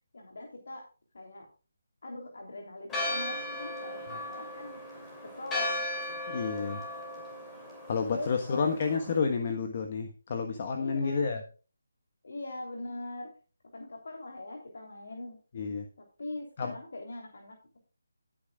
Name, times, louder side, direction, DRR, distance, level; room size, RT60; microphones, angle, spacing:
voice 1, 0.1-0.9 1.1-1.5 2.0-4.8 5.2-5.8 8.1-8.8 10.7-11.2 12.2-13.3 13.7-15.4 16.2-17.8, left 2 dB, 65° left, 1 dB, 3.2 m, -42 dB
Church bell, 2.9-9.2, left 1 dB, 10° left, 2.9 m, -37 dB
voice 2, 6.3-6.8 7.9-11.4 15.5-15.8 16.6-16.7, left 5 dB, 35° left, 5 dB, 1.3 m, -30 dB
16.0 x 8.8 x 2.4 m, 0.36 s
figure-of-eight pair, 165°, 0 cm